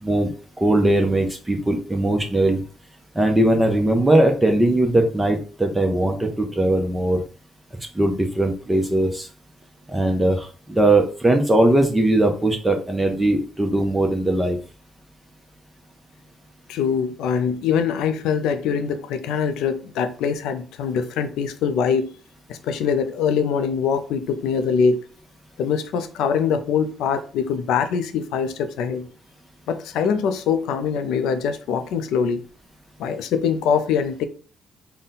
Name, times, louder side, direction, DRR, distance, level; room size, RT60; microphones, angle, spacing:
voice 1, 0.0-0.3 0.6-2.6 3.1-7.2 7.9-9.3 9.9-14.6, right 1 dB, 10° right, 0.5 m, -20 dB
voice 2, 16.7-22.1 22.5-25.1 25.6-29.1 29.7-32.4 33.0-34.3, left 6 dB, 85° left, 0.4 m, -23 dB
3.9 x 2.1 x 3.9 m
cardioid pair, 110°, 0 cm